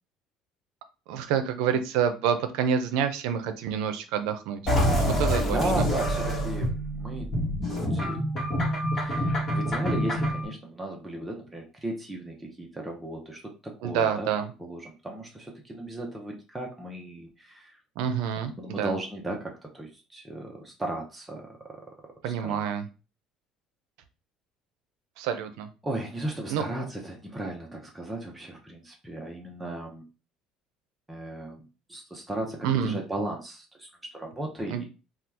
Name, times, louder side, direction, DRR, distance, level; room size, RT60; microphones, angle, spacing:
voice 1, 1.1-5.8 13.8-14.5 18.0-18.9 22.2-22.9 25.2-25.7 26.5-26.6 32.6-33.0 34.7-34.8, right 8 dB, 80° right, 9 dB, 0.5 m, -28 dB
sound 1, 4.7-10.5, equal, 30° left, 1.2 m, -26 dB
voice 2, 5.4-7.3 7.8-8.2 8.9-14.3 14.6-17.8 18.6-22.6 25.8-30.0 31.1-31.6 31.9-34.9, right 1 dB, 5° right, -1 dB, 0.7 m, -36 dB
2.8 x 2.3 x 3.4 m, 0.32 s
cardioid pair, 120°, 0 cm